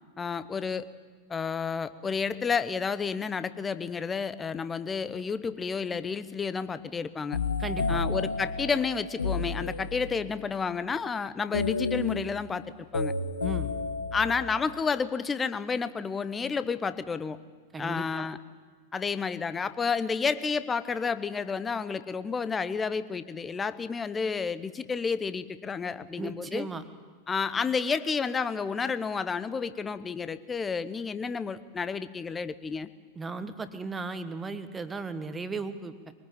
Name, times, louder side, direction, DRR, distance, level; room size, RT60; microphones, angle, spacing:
voice 1, 0.2-0.9 1.3-7.4 7.9-12.6 12.9-13.1 14.1-17.4 17.8-18.4 18.9-26.7 27.3-32.9, left 5 dB, 15° left, 14 dB, 1.0 m, -31 dB
sound 1, 7.3-10.3 11.5-14.8, left 4 dB, 75° left, 1.3 m, -31 dB
voice 2, 7.6-8.0 13.4-13.7 17.7-18.3 26.2-26.8 33.1-36.1, right 4 dB, 15° right, 11 dB, 1.5 m, -36 dB
23.5 x 19.5 x 9.1 m, 1.5 s
figure-of-eight pair, 90°, 0 cm